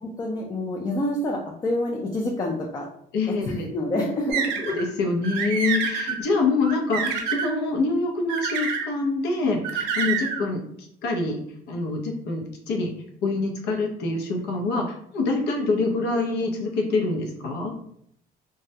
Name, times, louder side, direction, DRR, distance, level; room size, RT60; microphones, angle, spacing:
voice 1, 0.0-2.8 3.4-4.5, left 1 dB, 25° left, 0 dB, 0.4 m, -27 dB
voice 2, 3.1-3.7 4.6-10.6 11.0-11.4 11.7-12.9 13.2-17.7, left 3 dB, 85° left, 2 dB, 0.6 m, -25 dB
sound 1, 4.3-4.8 5.2-6.2 6.6-7.5 8.3-8.9 9.6-10.4, right 6 dB, 85° right, 0.5 m, -27 dB
2.3 x 2.0 x 2.7 m, 0.69 s
cardioid pair, 110°, 17 cm